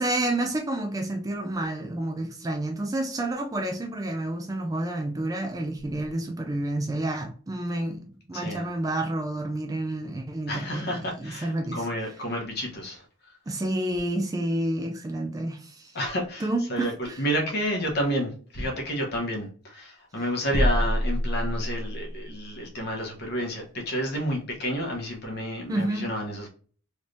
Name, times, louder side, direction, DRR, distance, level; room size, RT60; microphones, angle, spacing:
voice 1, 0.0-11.9 13.5-15.9 16.4-17.2 25.7-26.1, right 1 dB, 15° right, 0.3 m, -29 dB
voice 2, 8.3-8.7 10.5-13.0 15.9-26.5, equal, 50° left, 1.0 m, -30 dB
sound 1, 20.5-22.1, equal, 65° right, 0.8 m, -25 dB
3.2 x 3.2 x 2.5 m
head